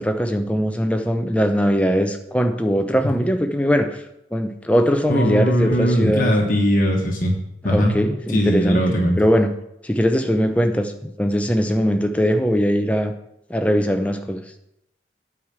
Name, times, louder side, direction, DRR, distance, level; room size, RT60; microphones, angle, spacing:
voice 1, 0.0-4.0 4.3-6.3 7.6-9.5 9.8-13.1 13.5-14.5, equal, 5° left, 0.7 m, -20 dB
voice 2, 5.1-7.3 7.6-8.0 8.3-9.2, equal, 45° left, 1.3 m, -19 dB
9.0 x 4.9 x 7.3 m
head